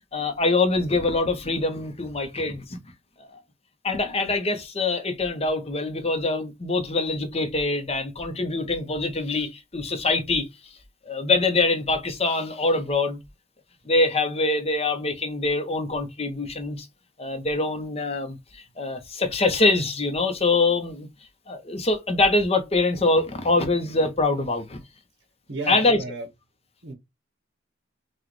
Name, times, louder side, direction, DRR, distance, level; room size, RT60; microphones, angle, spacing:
voice 1, 0.1-2.8 3.3-3.4 3.8-10.5 11.1-13.2 13.9-16.9 17.2-21.1 21.5-24.8 25.7-26.0, left 3 dB, 30° left, 0.9 m, -24 dB
voice 2, 25.5-26.3 26.8-26.9, right 2 dB, 65° right, 1.3 m, -33 dB
5.9 x 2.5 x 3.2 m
head